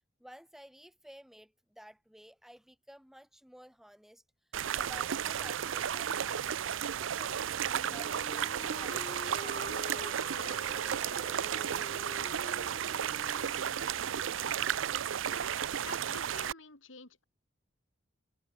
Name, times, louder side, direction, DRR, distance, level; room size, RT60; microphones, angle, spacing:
voice 1, 0.2-4.2 4.7-12.0, equal, ahead, 1.2 m, -54 dB
sound 1, 4.5-16.5, right 9 dB, 75° right, 0.5 m, -33 dB
Wind instrument woodwind instrument, 7.5-14.4, left 2 dB, 30° left, 1.4 m, -48 dB
voice 2, 15.2-17.2, left 4 dB, 75° left, 4.2 m, -50 dB
head